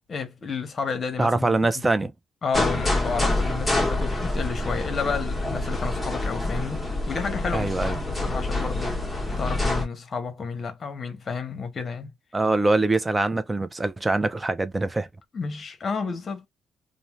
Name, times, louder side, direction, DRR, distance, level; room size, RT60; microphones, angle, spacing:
voice 1, 0.1-1.6 2.4-12.1 15.3-16.5, left 5 dB, 45° left, 1.0 m, -31 dB
voice 2, 1.2-2.1 7.5-8.0 12.3-15.1, right 2 dB, 20° right, 0.5 m, -23 dB
sound 1, 2.5-9.8, left 2 dB, 15° left, 1.0 m, -26 dB
2.6 x 2.1 x 3.1 m
cardioid pair, 90°, 0 cm